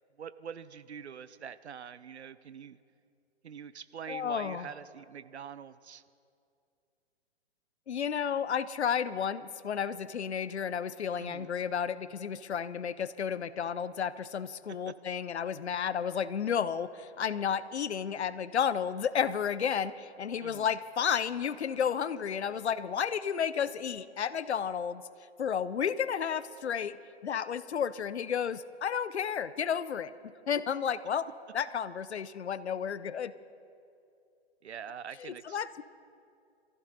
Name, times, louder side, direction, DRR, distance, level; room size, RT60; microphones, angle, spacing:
voice 1, 0.2-2.8 3.4-6.0 11.2-11.5 14.8-14.9 20.4-20.7 34.6-35.6, right 7 dB, 80° right, 15 dB, 0.7 m, -44 dB
voice 2, 4.1-4.7 7.9-25.0 25.4-27.0 27.2-30.1 30.5-31.3 31.5-33.3 35.2-35.8, left 7 dB, 75° left, 16 dB, 0.7 m, -32 dB
23.5 x 15.0 x 4.0 m, 2.5 s
figure-of-eight pair, 125°, 33 cm